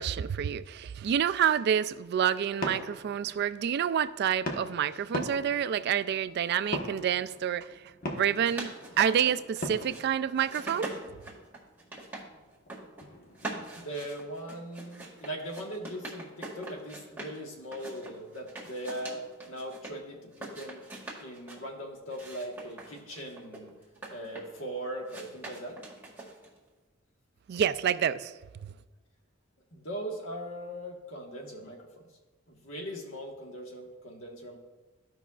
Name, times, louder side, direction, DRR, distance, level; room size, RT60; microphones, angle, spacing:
voice 1, 0.0-7.7 8.1-10.9 27.5-28.3 28.6-28.7, right 8 dB, 55° right, 0.3 m, -28 dB
sound 1, 1.9-14.0, left 1 dB, 45° left, 1.1 m, -42 dB
sound 2, 8.2-10.0 10.3-12.2 12.5-13.0 13.3-17.4 17.7-19.9 20.3-21.6 22.1-24.6 25.1-26.6, right 2 dB, 10° right, 1.8 m, -43 dB
voice 2, 13.7-20.8 21.2-23.7 24.1-25.8 29.7-31.8 32.5-34.6, right 1 dB, 85° left, 1.5 m, -40 dB
14.5 x 5.5 x 2.4 m
head